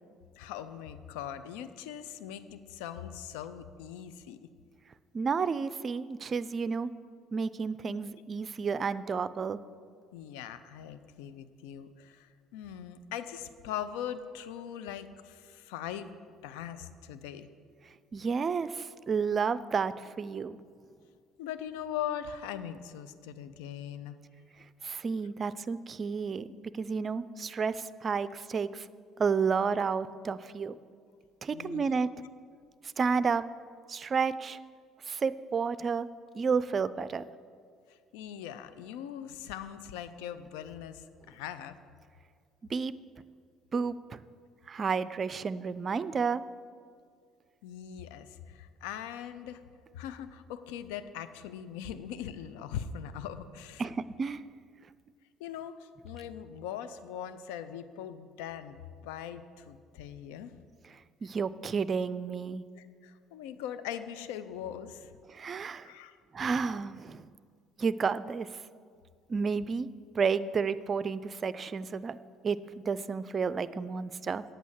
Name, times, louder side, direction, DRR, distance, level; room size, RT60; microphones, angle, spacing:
voice 1, 0.4-4.4 10.1-17.5 21.4-24.2 31.5-32.0 37.9-41.8 47.6-49.6 49.9-53.9 55.4-60.5 62.8-65.2 65.8-66.2, left 9 dB, 75° left, 11 dB, 0.5 m, -41 dB
voice 2, 5.1-6.9 7.3-9.6 18.1-20.6 24.8-26.5 26.7-28.9 29.2-30.7 31.4-32.1 33.0-33.4 33.9-34.6 35.1-36.1 36.3-37.2 42.7-42.9 43.7-44.2 44.7-46.4 53.8-54.4 61.2-62.6 65.3-65.9 66.3-67.3 67.8-68.5 69.3-69.9 70.1-72.2 72.4-72.6 72.9-74.4, right 5 dB, 40° right, 15 dB, 0.4 m, -31 dB
9.0 x 8.3 x 7.3 m, 2.1 s
hypercardioid pair, 55°, 0 cm